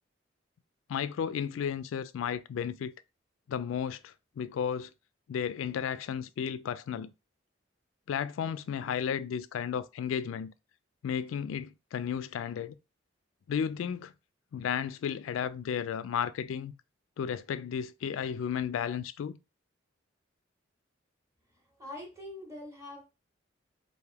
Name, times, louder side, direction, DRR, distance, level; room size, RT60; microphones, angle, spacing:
voice 1, 0.9-2.9 3.5-4.9 5.3-7.1 8.1-10.5 11.0-12.7 13.5-14.1 14.5-16.7 17.2-19.4, left 7 dB, 85° left, 0.3 m, -33 dB
voice 2, 21.5-23.1, left 1 dB, 15° right, 1.3 m, -44 dB
3.4 x 2.6 x 4.5 m
head